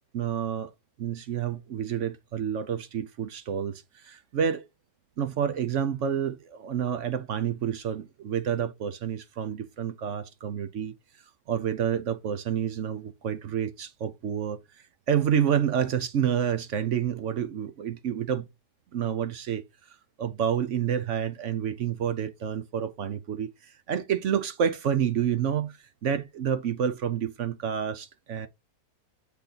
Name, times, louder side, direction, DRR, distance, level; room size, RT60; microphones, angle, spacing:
voice 1, 0.1-0.7 1.0-4.6 5.2-10.9 11.5-14.6 15.1-18.5 18.9-19.6 20.2-28.5, right 8 dB, 60° right, 0.8 m, -29 dB
8.2 x 3.4 x 3.8 m
omnidirectional pair, 1.9 m